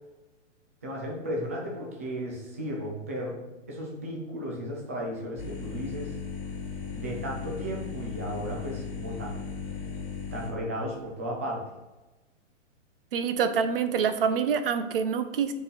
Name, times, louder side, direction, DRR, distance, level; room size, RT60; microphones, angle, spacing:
voice 1, 0.8-6.2 6.9-9.6 10.3-11.6, equal, 15° right, -2 dB, 0.3 m, -35 dB
sound 1, 5.4-10.5, left 5 dB, 40° left, 1.7 m, -37 dB
voice 2, 13.1-15.5, right 6 dB, 45° right, 10 dB, 0.7 m, -26 dB
7.8 x 4.1 x 3.8 m, 1.1 s
hypercardioid pair, 155°, 37 cm